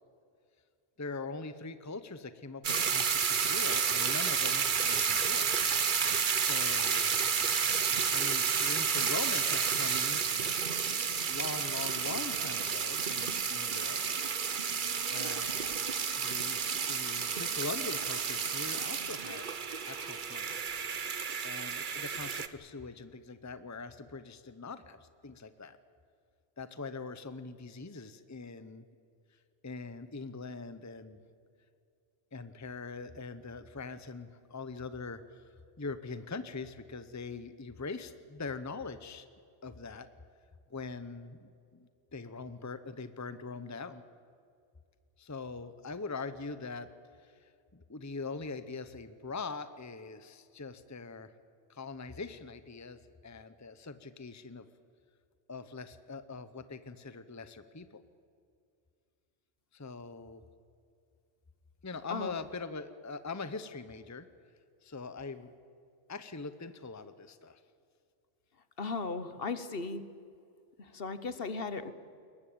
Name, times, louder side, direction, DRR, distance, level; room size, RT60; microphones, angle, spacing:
voice 1, 1.0-5.5 6.4-7.1 8.1-10.2 11.3-14.0 14.7-15.9 16.1-19.5 19.9-20.6 21.4-25.8 26.6-28.8 29.6-31.2 32.3-35.4 35.8-39.3 39.6-40.1 40.7-44.0 45.2-46.9 47.2-51.3 51.7-54.7 55.5-58.0 59.7-60.4 61.8-64.3 64.8-65.5 66.1-67.6, left 4 dB, 15° left, 12 dB, 0.8 m, -42 dB
sound 1, 2.6-22.5, right 6 dB, 50° right, 1.0 m, -31 dB
voice 2, 68.8-70.0 70.8-71.9, left 4 dB, 55° left, 12 dB, 1.3 m, -36 dB
22.0 x 20.0 x 8.7 m, 2.4 s
omnidirectional pair, 1.2 m